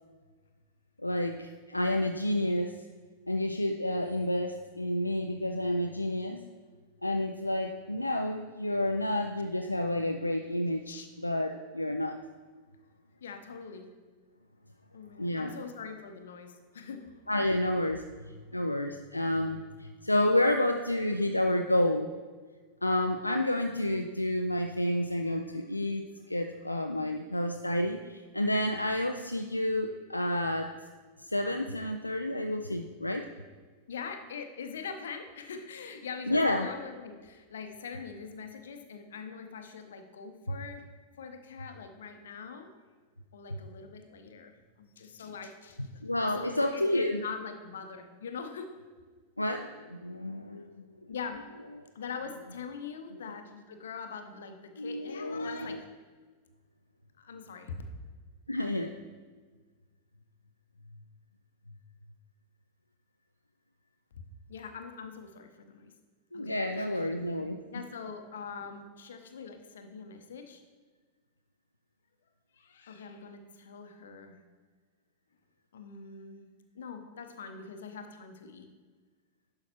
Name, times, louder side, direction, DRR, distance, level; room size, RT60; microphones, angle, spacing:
voice 1, 1.0-2.7 3.3-6.4 7.0-12.2 15.2-15.5 17.3-22.1 22.8-30.7 31.2-33.3 36.3-36.7 46.0-47.2 49.4-50.6 53.1-53.2 54.8-55.8 58.5-58.9 66.3-67.6, left 1 dB, 85° left, 5 dB, 0.3 m, -30 dB
voice 2, 13.2-13.9 14.9-17.0 25.3-25.7 33.9-40.9 41.2-42.7 43.3-46.0 46.4-48.7 51.1-51.4 51.9-55.9 57.2-57.8 64.5-65.9 66.3-67.0 67.7-70.6 72.5-74.4 75.7-76.5 76.7-78.7, left 6 dB, 65° left, 7 dB, 0.8 m, -43 dB
11.0 x 5.7 x 3.0 m, 1.4 s
figure-of-eight pair, 90°, 0 cm